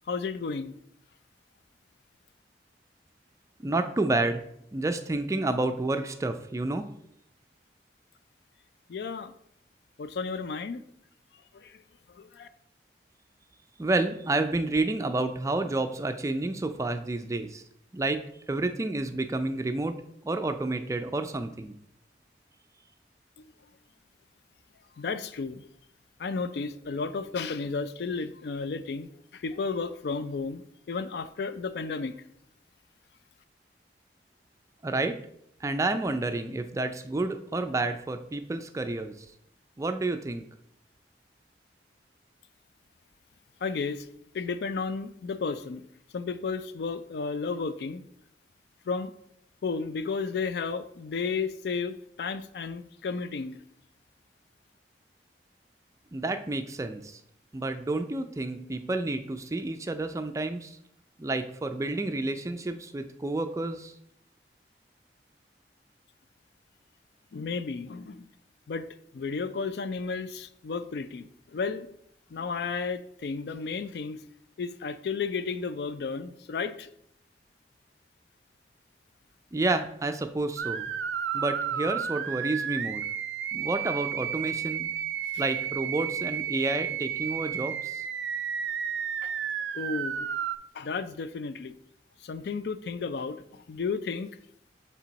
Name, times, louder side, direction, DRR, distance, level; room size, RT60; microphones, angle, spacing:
voice 1, 0.1-0.8 8.9-9.3 10.0-10.8 11.5-11.8 12.1-12.5 25.0-25.6 26.2-32.1 43.6-44.1 44.3-45.8 46.1-48.0 48.9-49.1 49.6-53.6 67.3-68.2 68.7-68.9 69.1-71.9 72.3-74.2 74.6-76.9 89.2-89.3 89.7-90.3 90.7-91.7 92.2-94.3, left 4 dB, 65° left, 12 dB, 0.4 m, -33 dB
voice 2, 3.6-4.4 4.7-6.9 13.8-17.6 17.9-18.2 18.5-20.0 20.2-21.7 34.8-35.2 35.6-39.1 39.8-40.4 56.1-57.2 57.5-60.8 61.2-63.9 79.5-80.9 81.3-83.0 83.5-84.9 85.4-88.0, right 2 dB, 20° right, 8 dB, 0.3 m, -30 dB
sound 1, 80.6-90.6, right 8 dB, 90° right, 0.4 m, -32 dB
7.4 x 3.3 x 4.0 m, 0.72 s
head